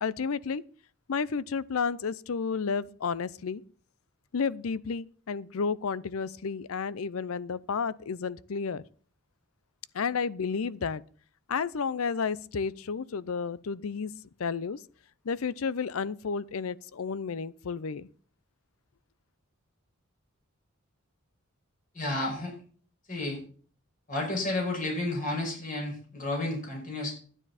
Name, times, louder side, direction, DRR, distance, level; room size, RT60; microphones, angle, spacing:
voice 1, 0.0-0.6 1.1-3.6 4.3-8.8 9.9-11.0 11.5-14.1 14.4-14.8 15.2-18.1, left 5 dB, 80° left, 0.5 m, -31 dB
voice 2, 21.9-22.5 23.1-23.4 24.1-27.1, left 2 dB, 40° left, 5.7 m, -31 dB
12.0 x 9.9 x 4.2 m
head